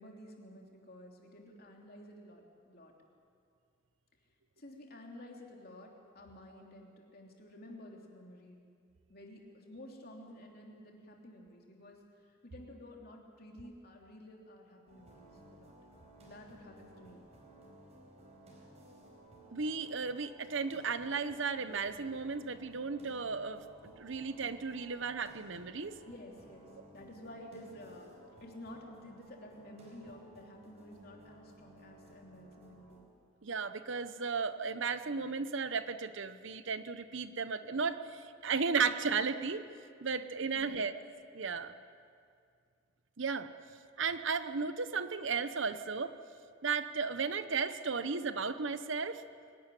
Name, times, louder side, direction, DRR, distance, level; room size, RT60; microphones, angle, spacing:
voice 1, 0.0-2.9 4.6-8.6 9.1-12.0 12.4-15.7 16.2-17.3 26.0-28.1 28.4-33.0 40.5-40.9, left 1 dB, 45° left, 0 dB, 3.1 m, -52 dB
sound 1, 14.9-33.0, right 1 dB, 30° right, 4.6 m, -57 dB
voice 2, 19.5-25.9 33.4-39.6 40.0-40.9 41.3-41.7 43.2-43.5 44.0-46.1 46.6-49.2, right 5 dB, 65° right, 12 dB, 0.8 m, -35 dB
23.5 x 12.0 x 9.9 m, 2.3 s
head